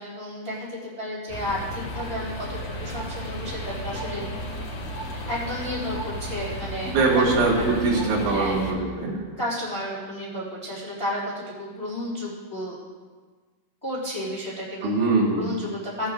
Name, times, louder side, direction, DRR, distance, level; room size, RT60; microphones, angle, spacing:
voice 1, 0.0-4.3 5.1-7.2 7.5-8.7 9.4-12.8 13.8-14.9 15.3-16.1, left 1 dB, 10° left, -7 dB, 1.5 m, -32 dB
sound 1, 1.3-8.7, equal, 60° left, 2.8 m, -34 dB
voice 2, 6.9-9.2 14.8-15.5, right 3 dB, 70° right, -5 dB, 4.4 m, -22 dB
18.0 x 8.5 x 2.3 m, 1.5 s
omnidirectional pair, 5.5 m